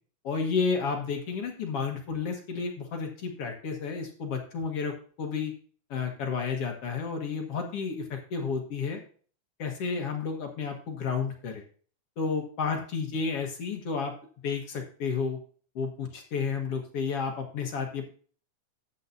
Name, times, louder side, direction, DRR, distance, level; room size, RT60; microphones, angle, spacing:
voice 1, 0.2-5.5 5.9-9.0 9.6-11.6 12.2-14.1 14.4-15.4 15.8-18.0, left 5 dB, 55° left, 2 dB, 2.2 m, -31 dB
12.5 x 8.3 x 2.7 m, 0.43 s
omnidirectional pair, 3.6 m